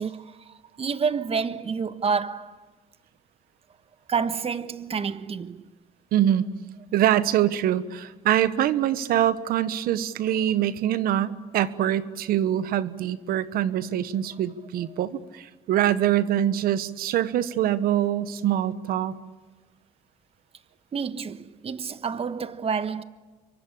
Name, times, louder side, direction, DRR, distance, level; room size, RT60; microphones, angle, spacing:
voice 1, 0.0-2.6 4.1-5.7 20.9-23.0, right 6 dB, 40° right, 1.3 m, -29 dB
voice 2, 6.1-6.4 6.9-19.1, right 11 dB, 70° right, 1.2 m, -24 dB
27.0 x 23.5 x 8.6 m
supercardioid pair, 80°, 16 cm